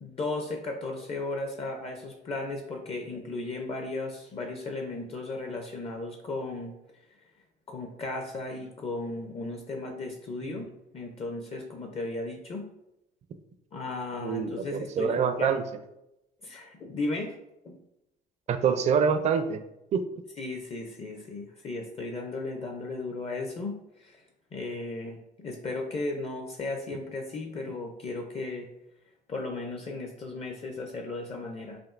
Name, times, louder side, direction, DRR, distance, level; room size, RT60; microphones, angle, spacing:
voice 1, 0.0-7.3 7.7-12.7 13.7-15.6 16.4-17.3 17.6-17.8 20.4-28.7 29.3-31.8, left 2 dB, 35° left, 3 dB, 0.6 m, -35 dB
voice 2, 14.2-15.6 18.5-19.6 19.9-20.0, right 6 dB, 40° right, 9 dB, 0.4 m, -26 dB
5.1 x 2.6 x 2.5 m, 0.86 s
cardioid pair, 110°, 17 cm